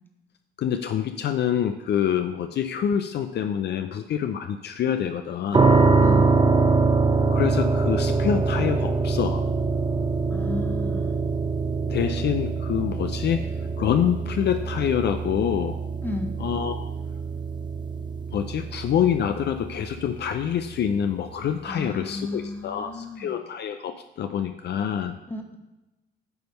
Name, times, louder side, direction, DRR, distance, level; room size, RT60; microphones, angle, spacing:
voice 1, 0.6-5.7 7.3-9.4 11.9-13.4 13.8-15.8 16.4-16.8 18.3-25.1, left 9 dB, 60° left, 7 dB, 0.5 m, -26 dB
sound 1, 5.5-20.4, right 4 dB, 20° right, 0.7 m, -24 dB
voice 2, 6.0-6.3 10.3-11.2 16.0-16.4 21.7-23.3 25.3-25.6, left 2 dB, 10° left, 4 dB, 1.1 m, -33 dB
9.1 x 3.4 x 5.3 m, 0.99 s
cardioid pair, 90°, 20 cm